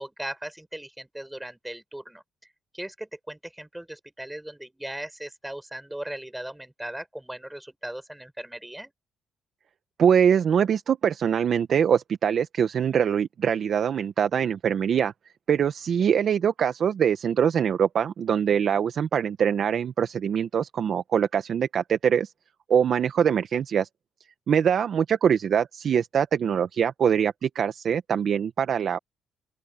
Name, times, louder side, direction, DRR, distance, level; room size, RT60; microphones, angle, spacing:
voice 1, 0.0-2.2 2.7-8.9, right 1 dB, 5° right, 7.0 m, -38 dB
voice 2, 10.0-15.1 15.5-22.3 22.7-23.9 24.5-29.0, right 8 dB, 60° right, 1.0 m, -23 dB
open air
cardioid pair, 90°, 0 cm